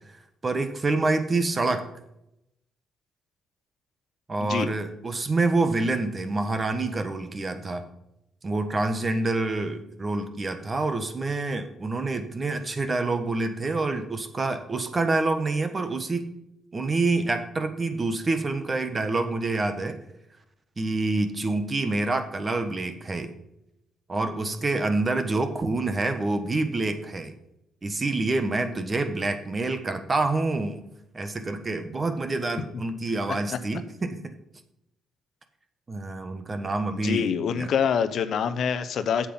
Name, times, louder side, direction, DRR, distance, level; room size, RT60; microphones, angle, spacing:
voice 1, 0.4-1.9 4.3-7.8 8.4-16.4 16.7-20.0 20.8-23.3 24.1-27.3 27.8-30.8 31.1-34.4 35.9-37.3 37.6-37.7, right 3 dB, 30° right, 8 dB, 1.3 m, -27 dB
voice 2, 36.9-39.3, left 7 dB, 65° left, 12 dB, 0.7 m, -26 dB
8.5 x 7.6 x 5.5 m, 0.82 s
cardioid pair, 90°, 0 cm